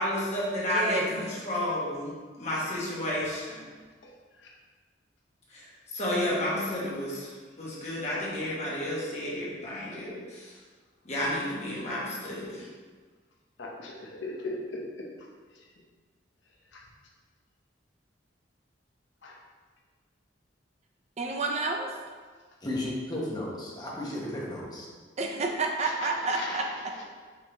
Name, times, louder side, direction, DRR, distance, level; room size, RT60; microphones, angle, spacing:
voice 1, 0.0-2.1 2.4-3.6 5.5-5.7 5.9-10.6 11.0-12.7, left 1 dB, 40° left, -6 dB, 1.2 m, -31 dB
voice 2, 0.7-1.1 21.2-21.9 25.2-26.7, right 3 dB, 40° right, 2 dB, 0.4 m, -29 dB
voice 3, 4.0-4.5 13.6-15.0 15.5-15.7 16.7-16.8 19.2-19.4 25.8-27.0, left 2 dB, 85° left, -2 dB, 0.7 m, -39 dB
voice 4, 22.6-24.9, left 1 dB, 20° left, -4 dB, 0.9 m, -34 dB
5.0 x 3.5 x 2.9 m, 1.5 s
head